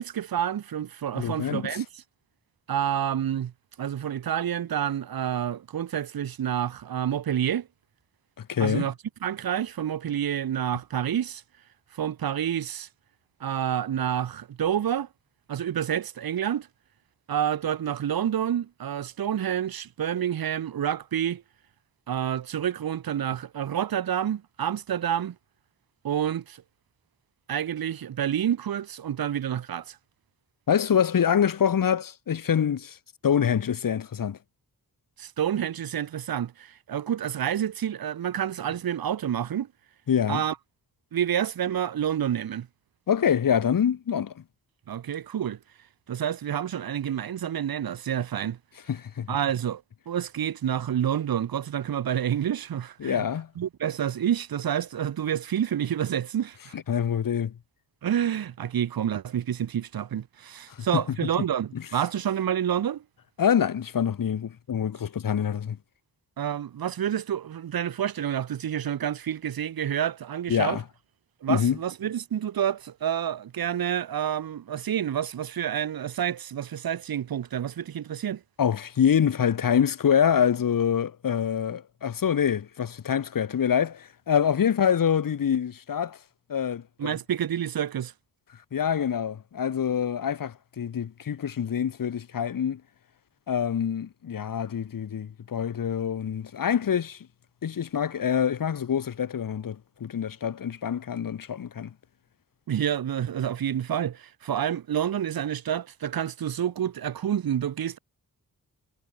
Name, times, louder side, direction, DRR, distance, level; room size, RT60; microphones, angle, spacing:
voice 1, 0.0-1.9 2.7-3.5 3.8-7.7 8.6-8.9 9.2-11.4 11.9-12.9 13.4-15.1 15.5-16.7 17.3-21.4 22.1-25.3 26.0-26.6 27.5-30.0 35.2-39.7 40.3-40.5 41.1-42.7 44.9-45.6 46.1-48.6 49.3-53.2 53.6-56.8 58.0-63.0 66.4-70.8 71.4-78.4 87.0-88.1 102.7-108.0, right 9 dB, 85° right, 1.4 m, -28 dB
voice 2, 1.1-1.8 8.4-8.9 30.7-33.0 33.2-34.4 40.1-40.4 43.1-44.4 48.9-49.4 53.0-53.5 56.7-57.6 60.7-61.0 61.7-61.8 63.4-65.8 70.5-70.8 71.5-71.8 78.6-86.2 86.5-87.1 88.7-92.8 93.5-97.3 97.6-101.9, left 8 dB, 70° left, 2.4 m, -25 dB
wide cardioid pair, 165°, 35 cm